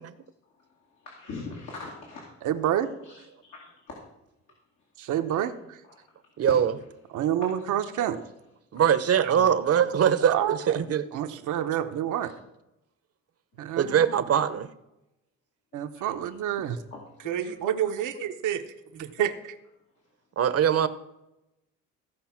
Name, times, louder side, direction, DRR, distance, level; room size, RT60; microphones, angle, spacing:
voice 1, 0.4-2.2 2.7-4.0 4.8-4.9 5.3-5.4 5.8-6.3 7.3-7.5 8.1-8.2 9.0-9.1 11.6-11.7 12.2-12.3 13.5-13.8 15.7-16.1 16.5-17.9 18.2-18.6 18.9-19.3 20.0-20.1, left 3 dB, 80° left, -3 dB, 2.7 m, -44 dB
voice 2, 2.4-2.9 5.0-5.8 7.1-8.2 9.2-9.5 10.2-10.8 11.1-12.3 13.6-14.1 15.7-16.7 17.3-18.1 18.4-18.6 18.9-19.3, right 11 dB, 80° right, 7 dB, 1.0 m, -28 dB
voice 3, 6.4-6.7 8.7-11.1 13.8-14.7 20.4-20.9, right 8 dB, 55° right, 13 dB, 0.9 m, -22 dB
15.5 x 5.3 x 5.9 m, 0.90 s
cardioid pair, 90°, 30 cm